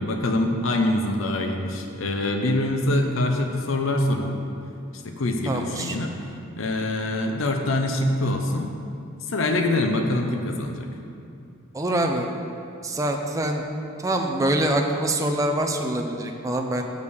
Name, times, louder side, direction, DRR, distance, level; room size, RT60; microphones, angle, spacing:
voice 1, 0.0-4.4 5.0-6.1 6.6-8.7 9.3-10.9, left 1 dB, 75° left, 4 dB, 0.6 m, -24 dB
voice 2, 5.5-6.0 11.7-12.3 12.8-13.6 14.0-16.8, right 1 dB, 15° right, 2 dB, 0.5 m, -25 dB
6.4 x 5.3 x 6.9 m, 2.5 s
head